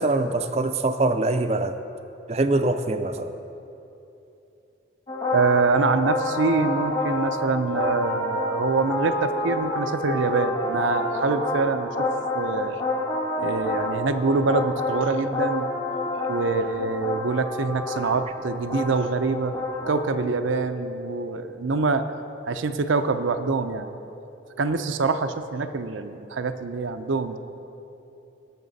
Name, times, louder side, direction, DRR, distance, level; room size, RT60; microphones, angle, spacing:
voice 1, 0.0-1.8 2.3-3.3, right 2 dB, 35° right, 9 dB, 0.4 m, -23 dB
sound 1, 5.1-20.1, left 2 dB, 30° left, 1.5 m, -28 dB
voice 2, 5.3-12.1 12.3-12.8 13.4-15.7 16.3-19.6 19.9-22.0 22.5-23.9 24.6-27.4, right 4 dB, 85° right, 9 dB, 0.5 m, -25 dB
18.0 x 6.7 x 4.0 m, 2.9 s
head